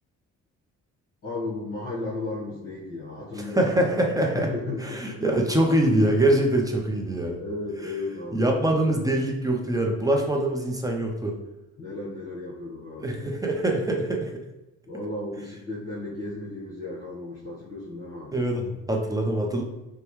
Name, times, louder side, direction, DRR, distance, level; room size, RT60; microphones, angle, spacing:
voice 1, 1.2-3.6 4.3-5.2 7.3-8.7 11.8-13.3 14.9-18.4, left 2 dB, 45° left, -7 dB, 1.3 m, -34 dB
voice 2, 3.4-4.5 4.8-7.4 8.3-11.4 13.0-14.3 18.3-19.6, right 1 dB, 10° right, 1 dB, 0.6 m, -24 dB
5.0 x 2.2 x 3.1 m, 0.98 s
cardioid pair, 90°, 30 cm